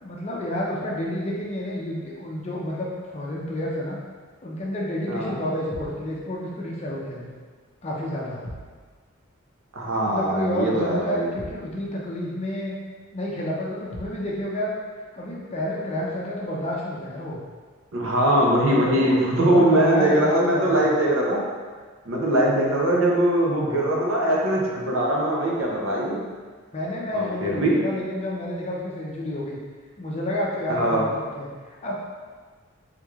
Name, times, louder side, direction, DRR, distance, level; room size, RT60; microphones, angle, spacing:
voice 1, 0.0-4.0 4.4-7.3 7.8-8.4 10.1-12.8 13.1-14.7 15.1-17.4 18.7-20.8 26.7-29.6 30.0-31.1 31.3-31.9, left 1 dB, 30° left, -4 dB, 0.5 m, -29 dB
voice 2, 5.1-5.4 9.7-11.3 17.9-21.4 22.1-26.2 27.1-27.8 30.7-31.0, right 1 dB, 70° right, -3 dB, 0.6 m, -21 dB
sound 1, 5.7-6.1 8.4-8.8 11.4-11.7 13.9-14.3, equal, 85° left, 0.7 m, -39 dB
3.5 x 3.1 x 2.3 m, 1.5 s
head